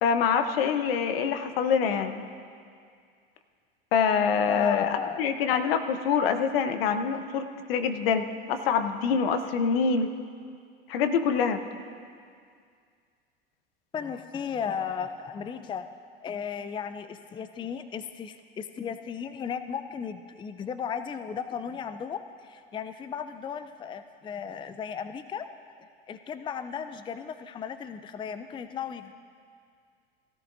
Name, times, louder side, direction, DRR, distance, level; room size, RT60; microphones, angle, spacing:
voice 1, 0.0-2.2 3.9-10.1 10.9-11.6, left 6 dB, 75° left, 8 dB, 0.9 m, -25 dB
voice 2, 4.5-5.2 13.9-15.9 16.2-25.5 26.1-29.1, left 7 dB, 15° left, 10 dB, 0.4 m, -35 dB
17.0 x 13.0 x 2.7 m, 2.2 s
hypercardioid pair, 90°, 30 cm